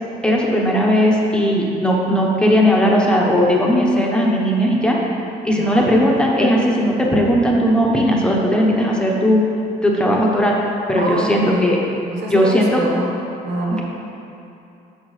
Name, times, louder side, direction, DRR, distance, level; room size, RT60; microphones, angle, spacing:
voice 1, 0.2-5.0 5.4-9.4 9.8-10.5 10.9-11.8 12.3-12.8, equal, 5° left, -3 dB, 1.0 m, -17 dB
voice 2, 5.6-5.9 10.9-13.2 13.4-13.8, equal, 80° right, -1 dB, 1.2 m, -26 dB
9.6 x 5.6 x 3.3 m, 2.8 s
cardioid pair, 110°, 17 cm